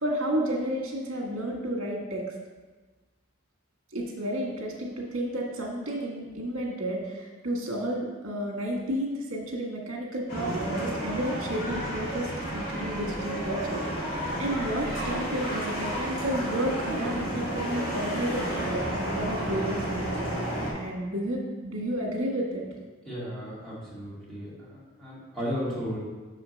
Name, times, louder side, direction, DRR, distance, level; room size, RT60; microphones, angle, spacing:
voice 1, 0.0-2.2 3.9-13.8 14.1-20.2 20.7-22.6, right 1 dB, 70° right, -1 dB, 1.7 m, -31 dB
sound 1, 10.3-20.7, right 1 dB, 50° left, 2.1 m, -31 dB
voice 2, 23.0-26.0, equal, ahead, -9 dB, 2.3 m, -35 dB
6.2 x 5.0 x 5.2 m, 1.3 s
head